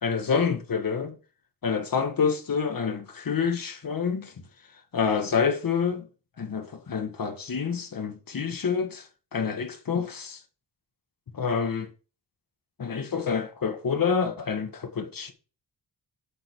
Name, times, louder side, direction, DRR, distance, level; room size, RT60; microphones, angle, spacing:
voice 1, 0.0-1.2 1.6-4.3 4.9-6.1 6.4-9.1 9.3-10.4 11.3-11.9 12.8-15.3, left 6 dB, 55° left, 1.6 m, -27 dB
7.7 x 6.8 x 4.6 m
wide cardioid pair, 175°, 40 cm